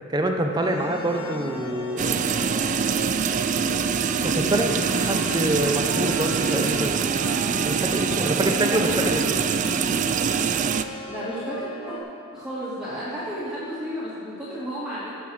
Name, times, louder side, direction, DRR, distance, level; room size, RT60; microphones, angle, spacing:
voice 1, 0.1-2.2 4.2-7.0 7.6-9.4, right 1 dB, 20° right, 4 dB, 0.8 m, -26 dB
sound 1, 0.6-12.0, left 1 dB, 75° left, 1.6 m, -36 dB
voice 2, 0.7-1.0 4.3-4.7 8.1-9.7 10.9-11.9 12.3-15.1, equal, 5° right, -10 dB, 1.8 m, -33 dB
sound 2, 2.0-10.8, right 6 dB, 35° right, 0.3 m, -24 dB
16.0 x 5.6 x 6.2 m, 2.5 s
head